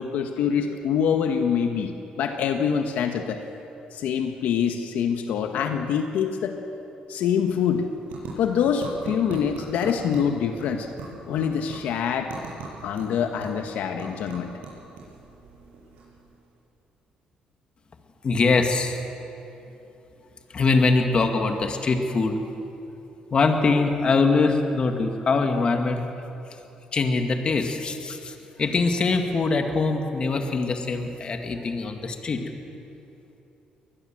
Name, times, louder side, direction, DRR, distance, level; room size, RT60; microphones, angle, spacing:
voice 1, 0.0-1.9 2.2-3.4 3.9-6.6 7.1-7.8 8.4-10.9 11.3-12.3 12.8-14.5, left 7 dB, 80° left, 5 dB, 1.4 m, -25 dB
sound 1, 7.1-16.6, right 4 dB, 90° right, 7.4 m, -42 dB
voice 2, 18.2-19.0 20.5-22.4 23.3-26.1 26.9-32.4, left 3 dB, 40° left, 5 dB, 2.2 m, -23 dB
23.0 x 19.5 x 7.8 m, 2.9 s
cardioid pair, 110°, 3 cm